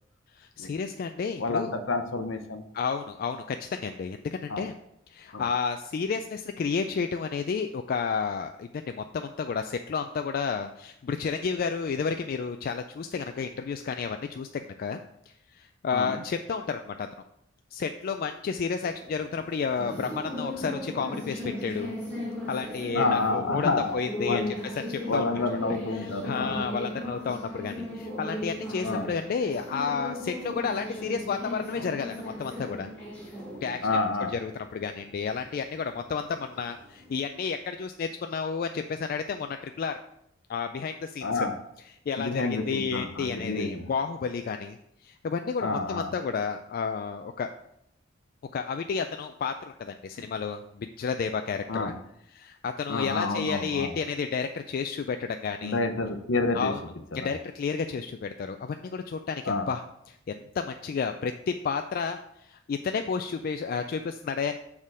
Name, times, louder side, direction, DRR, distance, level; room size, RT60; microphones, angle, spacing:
voice 1, 0.3-1.7 2.7-4.7 5.1-15.0 15.3-17.1 17.7-21.9 22.5-24.5 24.9-25.4 26.0-32.9 33.3-33.9 34.3-40.0 40.5-41.5 42.1-44.8 45.0-47.5 48.5-51.9 52.3-55.8 56.5-56.8 57.1-59.8 60.1-64.6, left 5 dB, 50° left, 7 dB, 0.3 m, -31 dB
voice 2, 1.4-2.6 4.5-4.7 5.3-5.4 15.9-16.2 22.9-24.5 25.1-26.6 28.8-29.1 31.8-31.9 33.8-34.4 41.2-41.6 42.2-43.8 45.6-46.1 51.7-52.0 52.9-53.9 55.6-56.7 57.2-57.3 59.5-59.7, left 3 dB, 65° left, 8 dB, 0.7 m, -29 dB
sound 1, 18.8-37.3, left 1 dB, 5° left, 2.3 m, -37 dB
6.5 x 3.6 x 6.1 m, 0.79 s
head